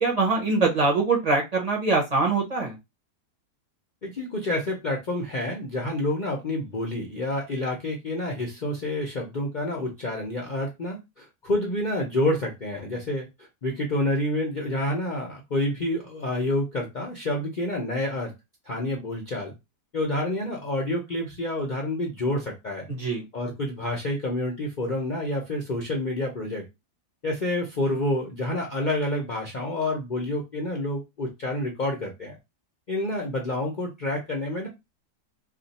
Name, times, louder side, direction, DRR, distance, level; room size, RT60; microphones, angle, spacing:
voice 1, 0.0-2.7 23.0-23.2, right 3 dB, 40° right, 0 dB, 0.5 m, -23 dB
voice 2, 4.0-13.3 13.6-18.3 18.7-19.5 19.9-22.9 23.3-26.7 27.2-32.4 32.9-34.7, left 1 dB, 65° left, 0 dB, 0.4 m, -28 dB
2.5 x 2.4 x 4.0 m, 0.22 s
omnidirectional pair, 1.8 m